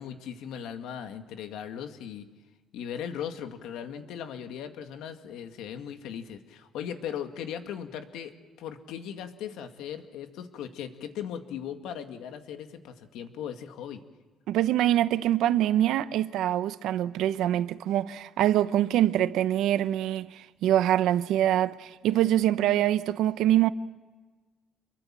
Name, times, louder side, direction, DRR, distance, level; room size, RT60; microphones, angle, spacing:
voice 1, 0.0-2.3 2.7-8.3 8.6-14.0, left 8 dB, 90° left, 2.1 m, -38 dB
voice 2, 14.5-23.7, right 12 dB, 85° right, 0.9 m, -24 dB
27.0 x 23.5 x 7.6 m
cardioid pair, 110°, 0 cm